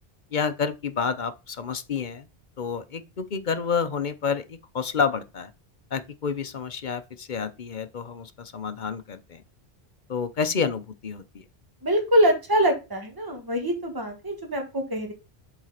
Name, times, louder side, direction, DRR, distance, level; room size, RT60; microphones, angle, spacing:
voice 1, 0.3-2.3 2.6-5.5 5.9-9.4 10.1-11.4, left 6 dB, 50° left, 0.8 m, -29 dB
voice 2, 11.8-15.1, equal, 20° right, 1.9 m, -24 dB
7.9 x 4.0 x 5.7 m
omnidirectional pair, 1.1 m